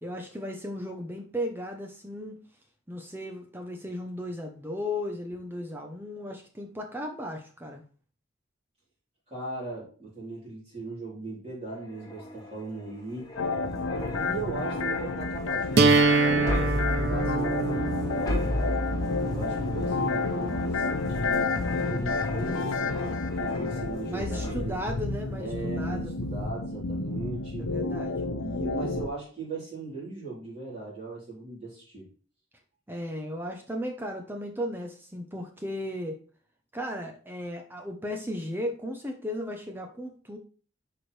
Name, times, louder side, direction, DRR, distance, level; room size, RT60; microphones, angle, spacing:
voice 1, 0.0-2.4 2.9-7.8 24.1-26.1 27.6-28.3 32.9-36.2 36.7-40.4, left 1 dB, 10° right, 3 dB, 0.8 m, -35 dB
voice 2, 9.3-13.3 14.1-18.8 19.2-24.8 25.4-27.7 28.4-32.1, right 3 dB, 30° right, -8 dB, 3.8 m, -38 dB
sound 1, 11.7-24.1 24.4-24.7, left 1 dB, 20° left, 1.3 m, -36 dB
sound 2, 13.4-29.1, left 3 dB, 80° left, 0.7 m, -30 dB
sound 3, 15.8-21.7, right 3 dB, 50° right, 0.7 m, -27 dB
11.0 x 4.5 x 3.3 m, 0.40 s
head